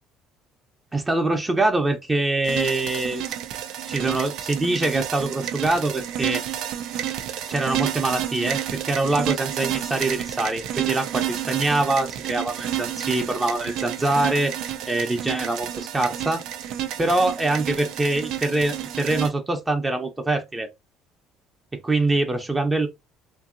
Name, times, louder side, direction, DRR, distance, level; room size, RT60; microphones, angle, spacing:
voice 1, 0.9-3.4 3.9-6.4 7.5-14.5 14.9-16.4 17.0-20.7 21.8-22.9, right 2 dB, 20° right, 0.6 m, -24 dB
sound 1, 2.4-19.3, right 11 dB, 70° right, 0.4 m, -30 dB
2.8 x 2.6 x 2.4 m
supercardioid pair, 85°, 0 cm